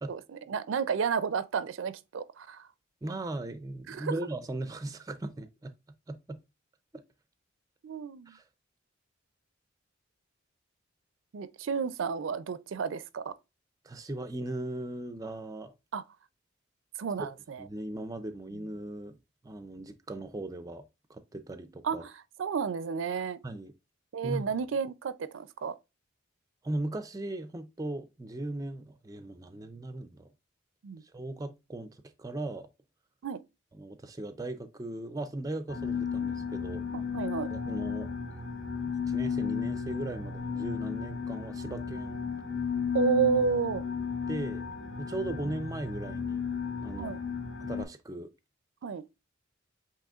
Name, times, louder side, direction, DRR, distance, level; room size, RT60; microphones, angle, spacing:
voice 1, 0.1-2.7 3.9-4.1 7.8-8.4 11.3-13.3 15.9-16.0 17.0-17.7 21.8-22.1 22.4-23.4 24.1-25.7 30.8-31.0 33.2-33.4 36.9-37.5 42.9-43.8 47.0-47.2 48.8-49.0, right 6 dB, 75° right, 0.4 m, -31 dB
voice 2, 3.0-5.7 6.1-6.4 6.9-7.0 8.3-8.4 13.8-15.7 17.2-17.3 17.6-19.2 19.4-20.8 21.1-22.0 23.4-23.7 24.2-24.4 26.6-30.3 31.1-32.7 33.7-36.9 37.5-38.1 39.1-42.2 44.3-44.6 45.0-46.4 46.8-47.1 47.6-48.3, right 1 dB, 20° right, 0.4 m, -38 dB
sound 1, 35.7-47.8, left 6 dB, 85° left, 1.5 m, -34 dB
7.7 x 2.9 x 2.4 m
head